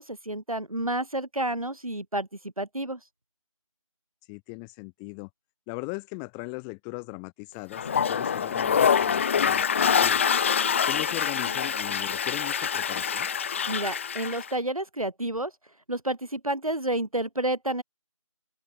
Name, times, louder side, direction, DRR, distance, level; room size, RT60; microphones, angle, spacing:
voice 1, 0.0-2.3 2.6-3.0 13.7-15.5 15.9-17.8, right 1 dB, 90° right, 4.9 m, -30 dB
voice 2, 4.3-5.3 5.7-10.3 10.9-13.3, left 40 dB or more, 5° left, 0.6 m, -38 dB
Toilet flush, 7.7-14.5, left 7 dB, 20° left, 1.4 m, -25 dB
open air
figure-of-eight pair, 160°, 18 cm